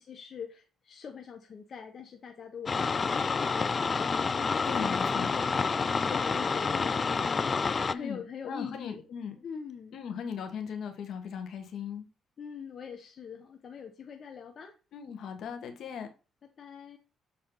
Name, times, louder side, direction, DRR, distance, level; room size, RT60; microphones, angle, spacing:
voice 1, 0.0-9.0 9.4-10.1 12.4-14.7 16.6-17.0, left 7 dB, 50° left, 1.0 m, -43 dB
sound 1, 2.7-7.9, left 5 dB, 35° left, 0.4 m, -28 dB
voice 2, 4.6-5.3 7.9-9.3 9.9-12.0 14.9-16.1, left 7 dB, 70° left, 1.5 m, -38 dB
7.4 x 4.3 x 3.9 m
cardioid pair, 90°, 0 cm